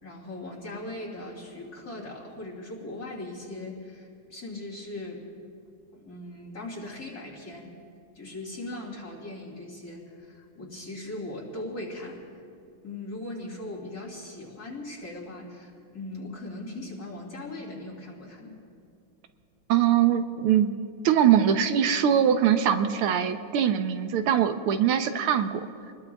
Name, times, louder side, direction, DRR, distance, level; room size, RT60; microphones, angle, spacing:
voice 1, 0.0-5.2 5.9-7.7 8.2-12.2 12.8-18.5, left 2 dB, 45° left, -3 dB, 3.5 m, -39 dB
voice 2, 19.7-20.7 21.0-25.7, right 9 dB, 85° right, 8 dB, 1.7 m, -22 dB
28.5 x 20.5 x 2.4 m, 2.4 s
omnidirectional pair, 2.3 m